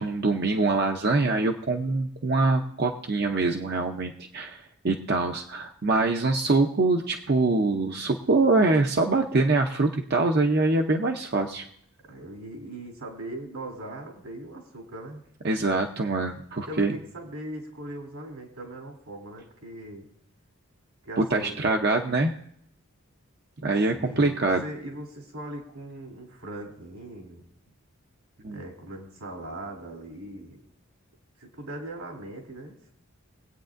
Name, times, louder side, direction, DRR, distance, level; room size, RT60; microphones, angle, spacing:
voice 1, 0.0-11.6 15.4-16.9 21.2-22.3 23.6-24.6 28.4-28.6, right 3 dB, 45° right, 3 dB, 0.6 m, -24 dB
voice 2, 12.0-15.2 16.6-20.1 21.0-21.7 23.9-27.4 28.5-30.6 31.4-32.9, right 1 dB, 85° right, 1 dB, 3.0 m, -40 dB
23.0 x 8.6 x 2.5 m, 0.71 s
head